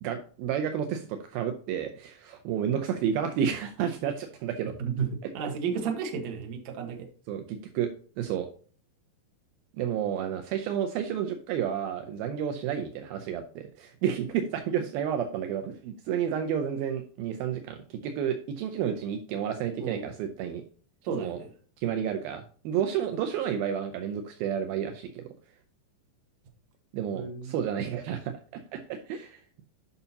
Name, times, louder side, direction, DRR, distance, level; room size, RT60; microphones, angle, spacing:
voice 1, 0.0-4.8 7.3-8.5 9.8-20.6 21.2-21.4 21.8-25.3 26.9-29.6, right 8 dB, 85° right, 6 dB, 2.1 m, -31 dB
voice 2, 5.3-7.1 19.8-20.1 21.0-21.5 27.1-27.5, right 6 dB, 60° right, 3 dB, 1.9 m, -32 dB
11.0 x 5.7 x 2.8 m, 0.41 s
omnidirectional pair, 5.1 m